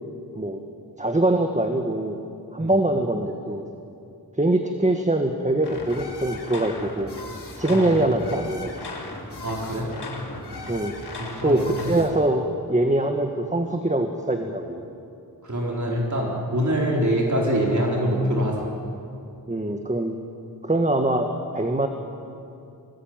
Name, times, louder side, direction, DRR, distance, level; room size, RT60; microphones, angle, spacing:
voice 1, 1.0-2.2 2.5-3.6 4.4-7.1 7.6-8.7 10.7-10.9 11.4-14.8 19.5-20.2 20.6-21.9, right 1 dB, 20° right, 4 dB, 1.6 m, -23 dB
sound 1, 5.6-12.1, left 2 dB, 85° left, 4.0 m, -37 dB
voice 2, 9.4-9.9 11.2-11.6 15.4-18.7, equal, 45° right, -2 dB, 4.4 m, -24 dB
24.0 x 20.0 x 9.0 m, 2.6 s
wide cardioid pair, 80°, 39 cm